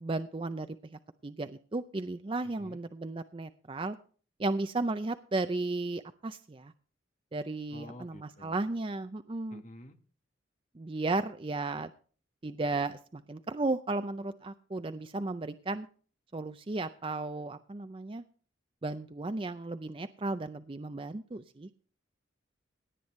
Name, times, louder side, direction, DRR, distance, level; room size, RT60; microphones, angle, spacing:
voice 1, 0.0-4.0 4.4-6.7 7.3-9.6 10.8-11.9 12.4-15.9 16.3-18.2 18.8-21.7, right 2 dB, 25° right, 10 dB, 0.4 m, -34 dB
voice 2, 2.4-2.8 7.7-8.7 9.5-10.0, left 1 dB, 40° left, 7 dB, 1.3 m, -50 dB
17.5 x 9.5 x 3.2 m, 0.41 s
head